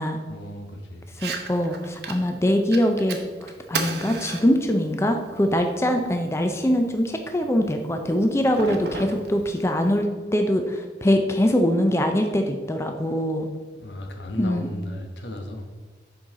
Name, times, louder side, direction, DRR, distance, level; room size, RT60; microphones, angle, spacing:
voice 1, 0.3-1.1 13.7-15.6, left 1 dB, 80° left, 3 dB, 1.1 m, -35 dB
Fire, 1.1-10.1, right 4 dB, 65° right, 0.8 m, -37 dB
voice 2, 1.2-10.1 10.3-13.5 14.3-14.7, equal, 15° left, 5 dB, 0.4 m, -23 dB
7.9 x 5.5 x 3.7 m, 1.5 s
head